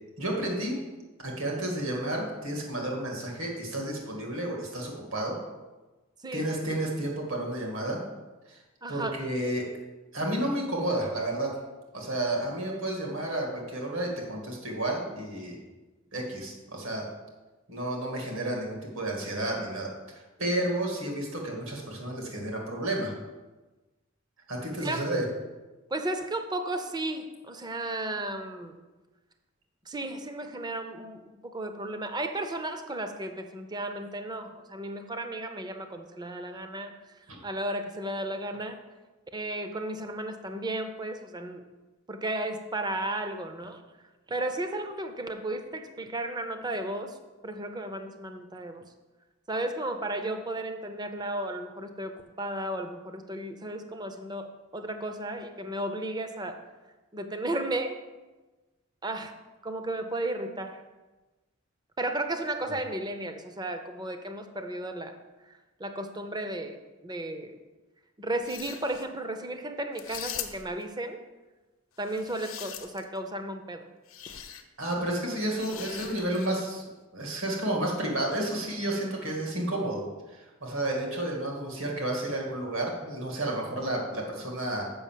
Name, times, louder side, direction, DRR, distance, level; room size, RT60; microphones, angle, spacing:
voice 1, 0.2-0.8 1.2-5.4 6.3-8.0 8.5-8.6 8.9-9.7 10.1-11.5 11.9-15.6 16.1-17.1 17.7-23.1 24.5-25.2 37.3-37.4 74.8-76.8 77.1-80.0 80.3-84.8, right 1 dB, 70° right, 0 dB, 2.2 m, -31 dB
voice 2, 8.8-9.3 24.8-25.1 25.9-28.7 29.9-36.9 37.4-38.8 39.3-41.6 42.1-43.8 44.3-47.2 47.4-48.8 49.5-56.6 57.1-58.0 59.0-59.3 59.6-60.8 62.0-65.1 65.5-67.6 68.2-71.2 72.0-73.9 74.3-74.4, right 1 dB, 20° right, 7 dB, 0.7 m, -34 dB
sound 1, 68.3-69.1 70.0-70.8 72.0-73.2 74.1-74.6 75.6-76.7, left 9 dB, 70° left, 0.9 m, -41 dB
7.0 x 5.8 x 7.5 m, 1.2 s
head